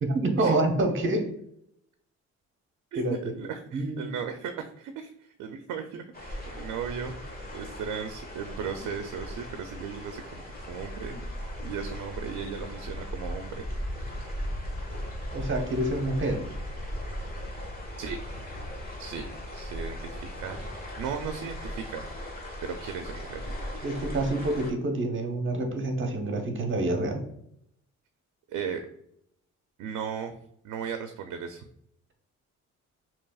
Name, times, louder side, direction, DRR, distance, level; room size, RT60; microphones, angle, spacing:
voice 1, 0.0-1.3 3.0-3.1 3.7-4.1 15.3-16.4 23.8-27.2, right 2 dB, 40° right, 4 dB, 0.9 m, -27 dB
voice 2, 2.9-7.1 7.5-11.2 11.6-13.6 18.0-18.2 19.0-20.6 21.0-22.0 22.6-23.5 28.5-28.8 29.8-30.4 30.6-31.7, right 7 dB, 80° right, 7 dB, 0.5 m, -36 dB
sound 1, 6.1-24.7, equal, 30° left, 1.4 m, -38 dB
5.3 x 2.9 x 2.3 m, 0.73 s
cardioid pair, 90°, 30 cm